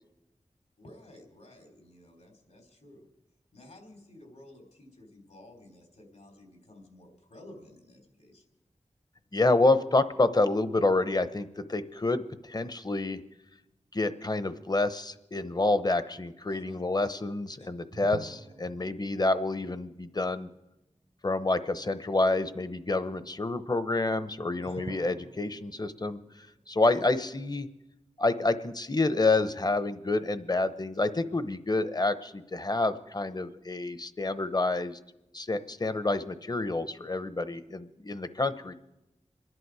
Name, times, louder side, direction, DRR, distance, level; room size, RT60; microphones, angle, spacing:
voice 1, 0.8-3.1 3.5-8.4 16.5-16.8 17.6-17.7 24.6-24.8 26.9-27.2, left 1 dB, 75° left, 2 dB, 3.7 m, -53 dB
voice 2, 9.3-13.2 13.9-20.5 21.2-27.7 28.2-35.0 35.3-38.7, left 2 dB, 35° left, 12 dB, 0.9 m, -28 dB
sound 1, 17.9-21.0 21.3-21.4 24.7-28.0, right 3 dB, 55° right, 0.8 m, -49 dB
26.5 x 11.0 x 4.8 m, 0.96 s
wide cardioid pair, 50°, 12 cm